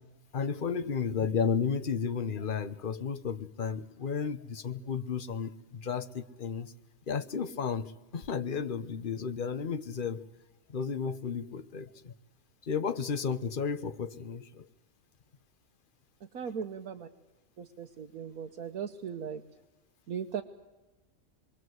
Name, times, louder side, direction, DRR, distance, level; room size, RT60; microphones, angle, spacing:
voice 1, 0.3-6.7 7.1-10.2 10.7-12.1 12.6-14.7, left 6 dB, 40° left, 10 dB, 1.2 m, -33 dB
voice 2, 16.2-17.1 17.6-19.4 20.1-20.4, right 7 dB, 85° right, 4 dB, 1.6 m, -38 dB
26.5 x 22.5 x 7.9 m, 1.0 s
omnidirectional pair, 1.5 m